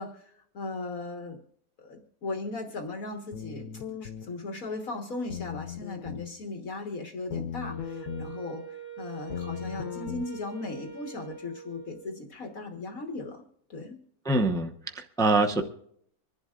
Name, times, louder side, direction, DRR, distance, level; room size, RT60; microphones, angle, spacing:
voice 1, 0.0-1.4 1.8-8.6 9.0-13.4 13.7-14.0, left 3 dB, 65° left, 2 dB, 1.9 m, -37 dB
sound 1, 3.3-4.3 5.3-6.3 7.3-8.3 9.3-10.3, left 8 dB, 90° left, 1.2 m, -37 dB
Wind instrument woodwind instrument, 7.6-12.3, right 5 dB, 75° right, 2.5 m, -44 dB
voice 2, 14.2-15.6, right 2 dB, 5° left, 3 dB, 0.6 m, -25 dB
25.5 x 11.0 x 2.4 m, 0.66 s
omnidirectional pair, 1.6 m